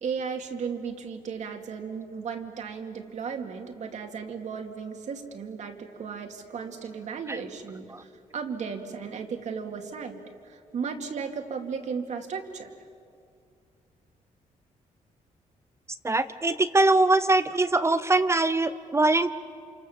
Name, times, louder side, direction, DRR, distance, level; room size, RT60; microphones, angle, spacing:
voice 1, 0.0-12.7, right 6 dB, 60° right, 4 dB, 2.4 m, -35 dB
voice 2, 16.0-19.3, right 2 dB, 20° right, 12 dB, 0.7 m, -22 dB
28.0 x 27.5 x 7.2 m, 2.4 s
cardioid pair, 125°, 14 cm